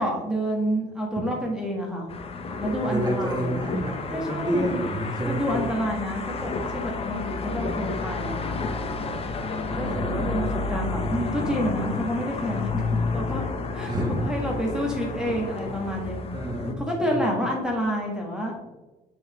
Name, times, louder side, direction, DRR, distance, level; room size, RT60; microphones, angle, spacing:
voice 1, 0.0-2.1 2.6-3.6 4.1-4.8 5.3-8.6 9.7-12.8 13.1-13.5 13.7-13.9 14.2-16.3 16.8-18.6, equal, 5° right, -1 dB, 1.7 m, -28 dB
sound 1, 2.1-16.7, left 3 dB, 35° left, 0.8 m, -31 dB
voice 2, 2.8-5.4 9.7-10.4 13.9-14.2 16.3-17.2, right 1 dB, 25° right, -1 dB, 2.2 m, -29 dB
6.4 x 5.1 x 3.5 m, 1.1 s
cardioid pair, 110°, 17 cm